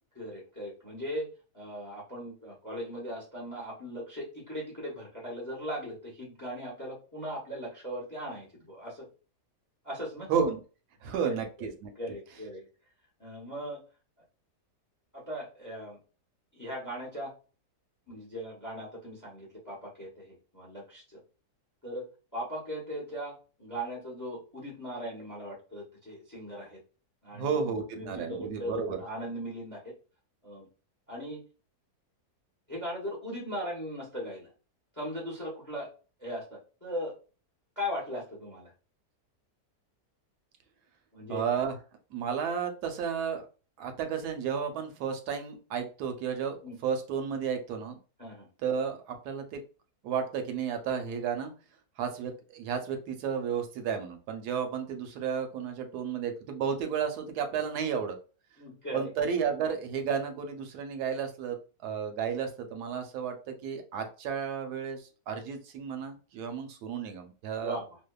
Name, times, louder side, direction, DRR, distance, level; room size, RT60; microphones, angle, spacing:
voice 1, 0.1-1.3 1.5-9.1 9.8-10.3 11.3-11.4 12.0-12.6 13.2-13.8 15.1-16.0 16.5-17.3 18.1-21.2 21.8-22.0 22.3-26.8 27.2-29.8 30.4-30.7 31.1-31.4 32.7-34.5 34.9-35.9 36.2-37.1 37.8-38.7 41.1-41.4 46.6-46.8 48.2-48.5 58.6-59.1 67.6-67.9, equal, 20° left, -3 dB, 0.5 m, -38 dB
voice 2, 10.3-10.6 11.0-11.9 27.3-29.0 41.3-41.8 42.1-43.4 43.8-46.6 46.8-48.0 48.6-49.6 50.0-51.5 52.0-58.2 58.9-61.6 61.8-67.8, right 7 dB, 75° right, 6 dB, 1.1 m, -32 dB
2.7 x 2.2 x 2.2 m, 0.36 s
omnidirectional pair, 1.7 m